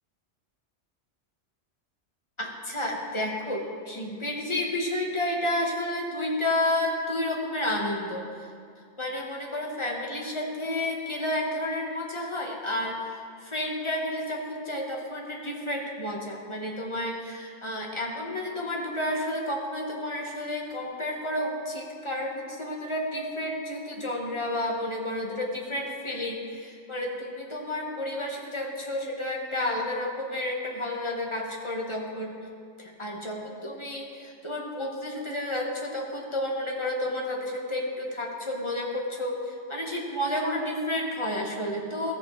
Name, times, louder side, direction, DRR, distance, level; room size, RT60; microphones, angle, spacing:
voice 1, 2.4-8.2 9.0-32.3 32.8-42.1, left 1 dB, 25° left, -1 dB, 1.1 m, -31 dB
14.0 x 7.4 x 3.1 m, 2.3 s
omnidirectional pair, 1.2 m